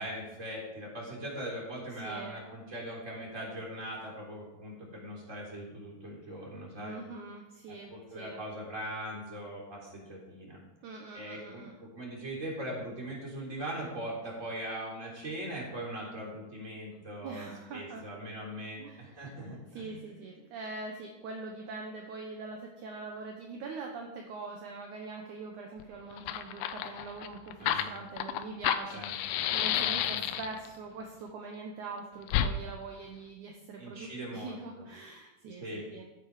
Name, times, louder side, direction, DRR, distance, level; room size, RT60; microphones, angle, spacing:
voice 1, 0.0-7.0 7.7-10.6 11.1-20.1 27.6-27.9 28.9-29.2 29.8-30.3 33.8-34.9 35.6-35.9, right 1 dB, 20° right, -3 dB, 3.6 m, -40 dB
voice 2, 6.8-8.4 10.8-11.7 17.2-18.1 18.8-19.1 19.7-36.0, right 3 dB, 65° right, 1 dB, 2.0 m, -43 dB
Fire, 25.8-25.9 26.1-30.7 32.3-32.5, left 11 dB, 85° left, 2.9 m, -30 dB
14.5 x 8.7 x 5.0 m, 1.0 s
omnidirectional pair, 4.8 m